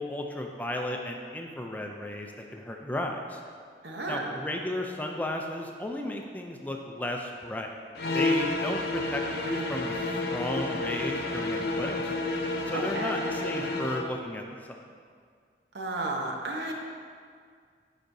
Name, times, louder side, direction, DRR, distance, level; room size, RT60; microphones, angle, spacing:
voice 1, 0.0-3.4 4.1-7.8 8.1-12.1 12.6-14.8, left 1 dB, 10° left, 2 dB, 0.4 m, -34 dB
voice 2, 3.8-4.3 12.7-13.2 15.7-16.7, right 2 dB, 85° right, 1 dB, 0.8 m, -33 dB
sound 1, 8.0-14.1, left 2 dB, 65° left, 0.5 m, -30 dB
9.9 x 5.0 x 2.7 m, 2.1 s
head